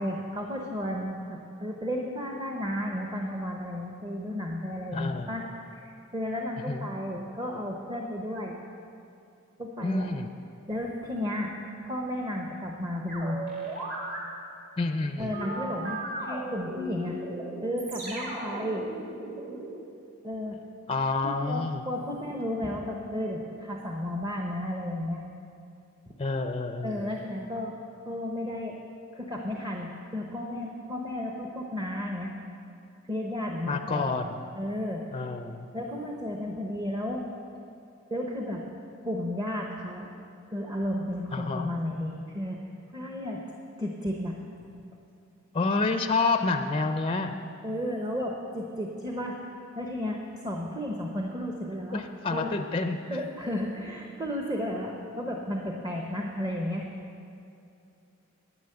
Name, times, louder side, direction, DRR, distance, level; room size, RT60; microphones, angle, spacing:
voice 1, 0.0-5.4 5.7-8.6 9.6-10.1 10.7-11.6 11.8-13.4 15.2-17.2 17.6-18.9 20.2-20.6 21.2-25.2 26.8-27.7 28.0-28.8 29.1-32.3 33.1-34.1 34.5-35.0 35.7-37.2 38.1-38.6 39.0-40.1 40.5-42.6 42.9-43.4 43.8-44.4 47.6-49.4 49.8-52.0 52.3-52.5 53.1-56.8, left 1 dB, 20° right, 0 dB, 0.9 m, -33 dB
voice 2, 4.9-5.3 6.7-6.9 9.8-10.3 14.8-15.4 20.9-21.8 26.2-27.1 33.7-34.4 35.1-35.7 41.3-41.7 45.5-47.4 51.9-53.2, left 3 dB, 25° left, 7 dB, 0.5 m, -29 dB
sound 1, 13.1-14.2 15.3-19.7, right 2 dB, 45° right, 2.4 m, -36 dB
10.5 x 9.1 x 7.8 m, 2.6 s
head